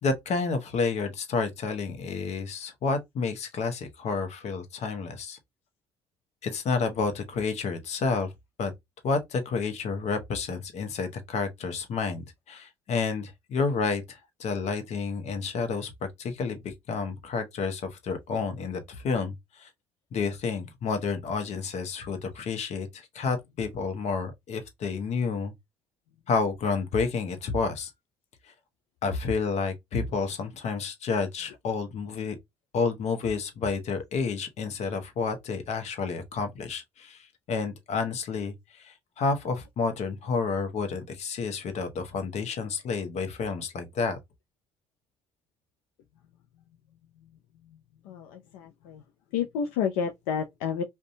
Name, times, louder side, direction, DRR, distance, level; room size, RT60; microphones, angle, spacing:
voice 1, 0.0-5.4 6.4-8.3 8.6-8.7 9.0-15.9 16.2-19.7 20.1-25.5 26.3-27.9 29.0-32.4 32.7-44.2, left 4 dB, 60° left, 0.8 m, -30 dB
voice 2, 48.0-49.0 49.3-50.8, left 7 dB, 85° left, 0.4 m, -30 dB
2.6 x 2.2 x 2.6 m
supercardioid pair, 65°, 13 cm